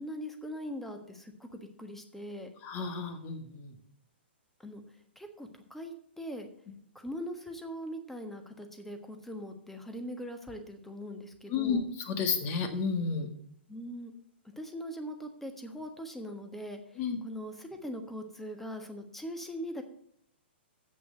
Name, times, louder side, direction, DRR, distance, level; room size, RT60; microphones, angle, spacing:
voice 1, 0.0-2.5 4.6-4.8 5.1-6.5 6.9-11.9 13.7-14.1 14.6-19.8, equal, 5° left, 5 dB, 1.3 m, -41 dB
voice 2, 2.6-3.7 11.5-13.3 17.0-17.2, left 5 dB, 35° left, 6 dB, 1.8 m, -31 dB
8.0 x 6.8 x 7.5 m, 0.68 s
hypercardioid pair, 130°, 6 cm